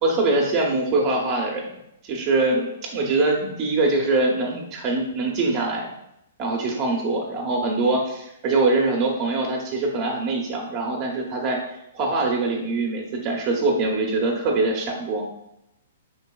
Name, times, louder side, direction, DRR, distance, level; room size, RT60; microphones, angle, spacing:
voice 1, 0.0-5.9 6.4-11.6 11.9-15.3, right 2 dB, 35° right, -1 dB, 0.9 m, -23 dB
5.1 x 4.0 x 2.3 m, 0.82 s
hypercardioid pair, 135°, 0 cm